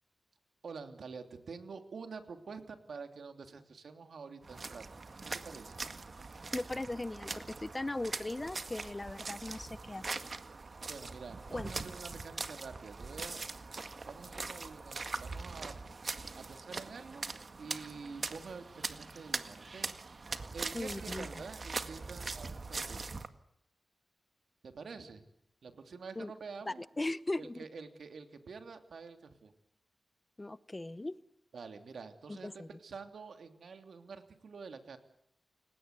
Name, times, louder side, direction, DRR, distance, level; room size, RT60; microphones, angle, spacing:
voice 1, 0.6-4.8 5.2-5.8 10.9-13.4 14.0-15.7 16.5-19.9 20.5-23.0 24.6-25.2 25.6-26.8 27.4-29.5 31.5-35.0, right 5 dB, 85° right, 7 dB, 3.0 m, -47 dB
sound 1, 4.4-23.3, right 3 dB, 50° right, 1.9 m, -42 dB
voice 2, 6.5-10.1 11.5-11.7 20.7-21.4 26.2-26.3 26.7-27.6 30.4-31.2 32.3-32.7, left 2 dB, 25° left, 17 dB, 1.0 m, -38 dB
29.5 x 17.5 x 8.3 m, 0.73 s
wide cardioid pair, 75°, 0 cm